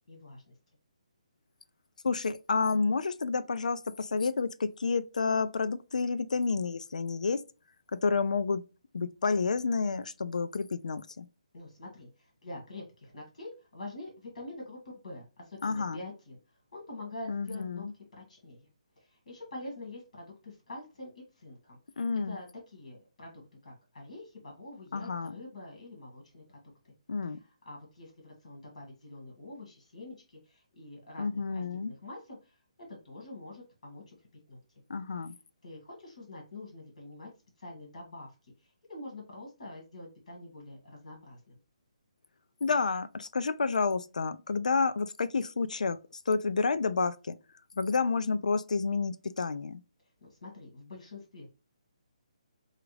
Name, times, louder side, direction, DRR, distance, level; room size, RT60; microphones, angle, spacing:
voice 1, 0.1-0.6 11.5-16.4 16.7-17.9 18.1-18.7 19.0-21.8 22.2-26.6 26.8-26.9 27.3-34.2 34.5-34.8 35.6-37.3 37.6-41.6 50.2-51.5, left 2 dB, 60° left, 2.1 m, -46 dB
voice 2, 2.0-7.4 7.9-8.6 8.9-11.3 15.6-16.0 17.3-17.9 22.0-22.4 24.9-25.4 27.1-27.4 31.2-31.9 34.9-35.3 42.6-46.0 46.3-47.4 47.8-49.8, left 4 dB, 85° left, 0.4 m, -30 dB
6.0 x 2.4 x 3.2 m
hypercardioid pair, 170°, 4 cm